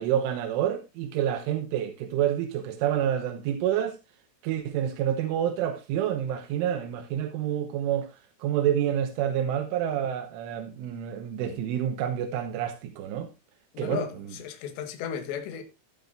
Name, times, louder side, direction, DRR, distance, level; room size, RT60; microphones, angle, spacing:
voice 1, 0.0-4.0 4.4-13.3 13.8-14.3, right 10 dB, 85° right, 3.6 m, -28 dB
voice 2, 13.7-15.6, left 8 dB, 70° left, 3.6 m, -35 dB
12.5 x 12.0 x 2.6 m
omnidirectional pair, 5.6 m